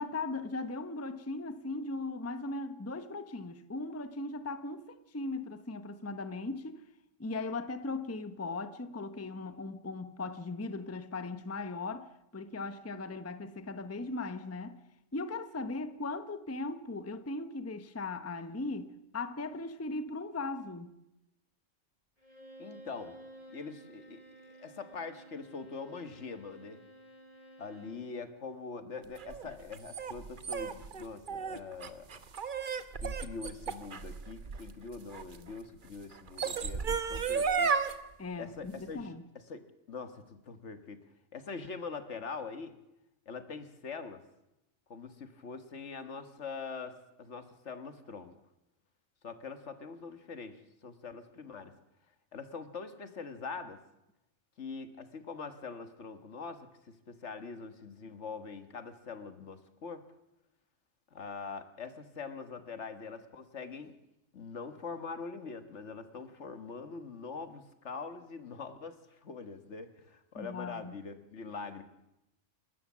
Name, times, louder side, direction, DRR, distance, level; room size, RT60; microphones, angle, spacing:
voice 1, 0.0-6.8 7.2-14.8 15.1-20.9 38.2-39.2 70.3-70.9, left 3 dB, 15° left, 0.7 m, -38 dB
Bowed string instrument, 22.2-28.1, right 1 dB, 35° left, 3.6 m, -53 dB
voice 2, 22.6-23.2 23.5-26.8 27.6-32.2 33.0-37.7 38.4-39.2 39.5-41.0 41.3-42.8 43.3-44.2 44.9-48.4 49.2-51.7 52.3-53.8 54.6-60.0 61.1-63.9 64.3-69.0 69.2-71.8, left 4 dB, 65° left, 1.7 m, -43 dB
sound 1, 29.2-35.4 36.1-37.9, right 5 dB, 45° right, 1.1 m, -33 dB
28.5 x 13.0 x 7.3 m
omnidirectional pair, 1.3 m